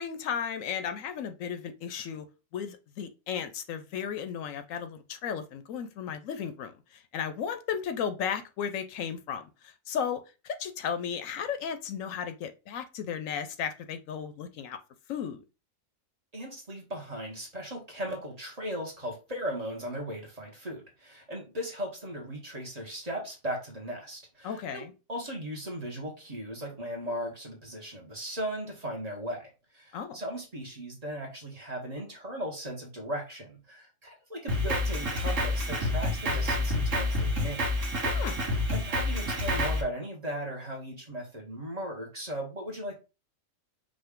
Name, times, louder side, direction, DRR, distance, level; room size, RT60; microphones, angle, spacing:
voice 1, 0.0-2.2 2.5-14.8 15.1-15.4 24.4-24.9 29.9-30.2 38.0-38.4, left 7 dB, 85° left, 1.0 m, -35 dB
voice 2, 16.3-37.6 38.7-43.0, equal, 30° right, 1.1 m, -37 dB
Drum kit, 34.5-39.8, left 1 dB, 70° right, 1.6 m, -28 dB
5.1 x 2.3 x 3.6 m
omnidirectional pair, 1.4 m